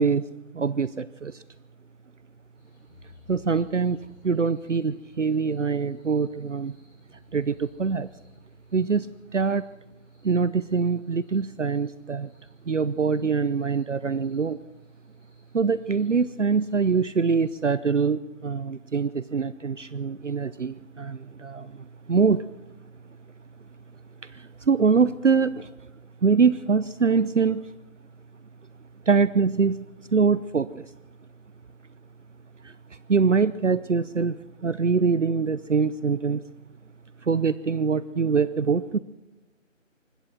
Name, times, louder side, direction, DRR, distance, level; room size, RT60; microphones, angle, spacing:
voice 1, 0.0-1.4 3.3-6.7 7.3-8.1 8.7-9.1 9.3-9.6 10.2-12.3 12.7-14.6 15.5-22.5 24.2-25.7 26.2-27.7 29.1-30.9 32.6-32.7 33.1-34.4 34.6-36.4 37.2-39.0, right 5 dB, 65° right, 17 dB, 0.8 m, -24 dB
sound 1, 2.5-17.7, left 3 dB, ahead, 2.9 m, -59 dB
24.5 x 21.0 x 6.0 m, 1.0 s
figure-of-eight pair, 180°, 39 cm